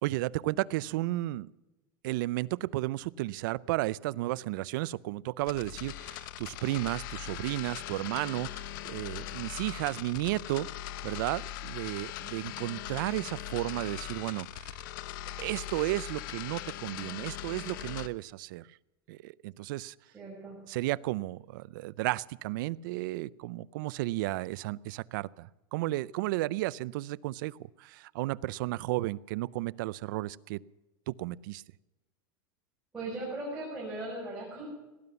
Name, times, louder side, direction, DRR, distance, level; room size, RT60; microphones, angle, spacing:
voice 1, 0.0-1.5 2.0-10.7 11.0-14.7 15.4-18.7 19.1-19.9 20.7-30.6 31.1-31.6, right 18 dB, 65° right, 21 dB, 0.5 m, -33 dB
sound 1, 5.4-18.1, left 13 dB, 65° left, 0.8 m, -40 dB
voice 2, 20.1-20.6 32.9-34.7, right 2 dB, 10° right, -7 dB, 6.2 m, -38 dB
18.0 x 11.0 x 6.9 m, 1.1 s
supercardioid pair, 160°, 12 cm